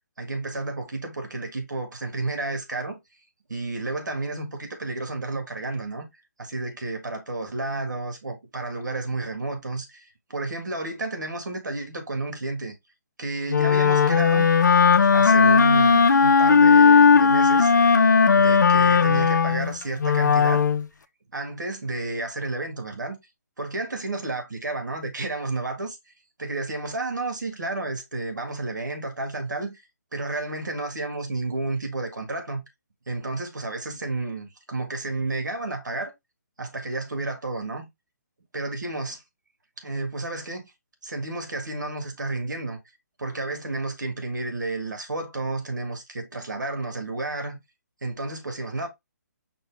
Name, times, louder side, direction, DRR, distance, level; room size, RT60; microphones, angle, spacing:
voice 1, 0.2-3.0 3.5-6.1 6.4-12.7 13.2-14.5 15.0-18.1 18.3-20.6 21.3-23.2 23.6-26.0 26.4-29.9 30.1-32.6 33.1-36.1 36.6-37.9 38.5-39.2 39.8-40.6 41.0-42.8 43.2-47.6 48.0-48.9, right 2 dB, 85° right, 1.8 m, -31 dB
Wind instrument woodwind instrument, 13.5-20.9, left 5 dB, 80° left, 0.6 m, -17 dB
5.2 x 2.7 x 3.4 m
hypercardioid pair, 150°, 10 cm